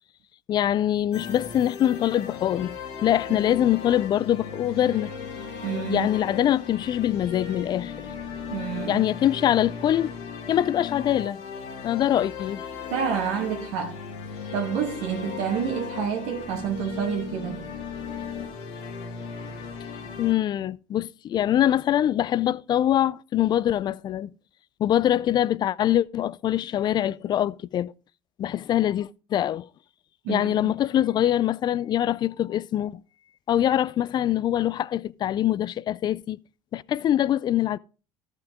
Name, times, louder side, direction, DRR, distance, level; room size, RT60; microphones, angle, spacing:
voice 1, 0.5-5.1 5.9-7.9 8.9-10.1 10.5-11.4 11.8-12.6 20.2-24.3 24.8-27.9 28.4-29.7 30.3-33.0 33.5-36.4 36.7-37.8, left 11 dB, 40° left, 0.4 m, -24 dB
sound 1, 1.1-20.3, left 6 dB, 75° left, 2.0 m, -37 dB
voice 2, 5.6-6.1 8.5-9.0 12.9-14.0 14.5-17.7 30.2-30.7, right 7 dB, 75° right, 1.7 m, -29 dB
13.5 x 6.0 x 3.6 m
supercardioid pair, 95°, 11 cm